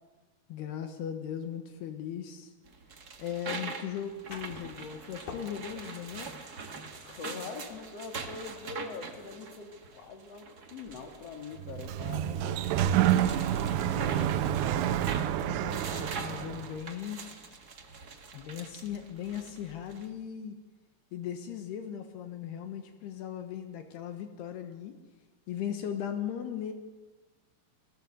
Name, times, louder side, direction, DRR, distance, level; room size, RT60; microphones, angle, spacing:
voice 1, 0.5-2.5 3.2-6.3 15.4-17.6 18.3-20.6 21.1-25.0 25.5-26.7, left 9 dB, 75° left, 7 dB, 3.3 m, -38 dB
sound 1, 2.6-20.1, right 4 dB, 60° right, 0.9 m, -44 dB
sound 2, 2.9-10.5, left 5 dB, 55° left, 3.8 m, -51 dB
voice 2, 7.0-13.1 13.6-15.1, left 5 dB, 40° left, 5 dB, 3.2 m, -44 dB
Sliding door, 11.6-16.7, right 11 dB, 85° right, 3.1 m, -28 dB
29.0 x 19.0 x 8.0 m, 1.2 s
omnidirectional pair, 4.9 m